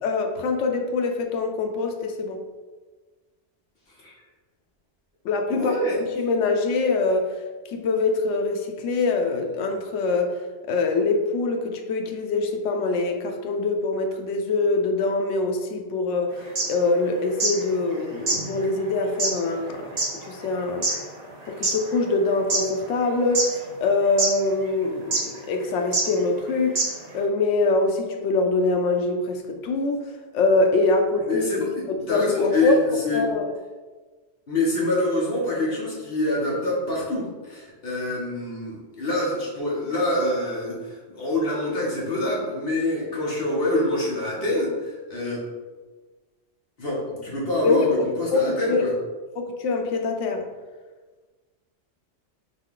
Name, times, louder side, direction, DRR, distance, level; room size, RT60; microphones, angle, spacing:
voice 1, 0.0-2.4 5.2-5.8 6.2-7.3 7.7-10.3 10.7-16.3 16.7-19.9 20.3-20.9 21.5-23.4 23.8-25.2 25.5-26.8 27.1-30.0 30.3-31.5 32.1-32.8 33.1-33.5 47.6-47.9 48.3-48.8 49.4-50.4, left 3 dB, 85° left, 4 dB, 0.9 m, -24 dB
voice 2, 5.5-6.0 31.3-33.3 34.5-45.4 46.8-48.9, left 1 dB, 55° left, -5 dB, 1.5 m, -26 dB
sound 1, 16.4-17.6 17.9-18.0 18.2-21.8 22.3-23.0 23.3-23.9 24.2-24.3 25.1-25.4 25.9-26.1 26.4-26.5 26.7-27.1, right 3 dB, 40° right, 0.8 m, -25 dB
4.1 x 3.1 x 3.7 m, 1.3 s
omnidirectional pair, 1.2 m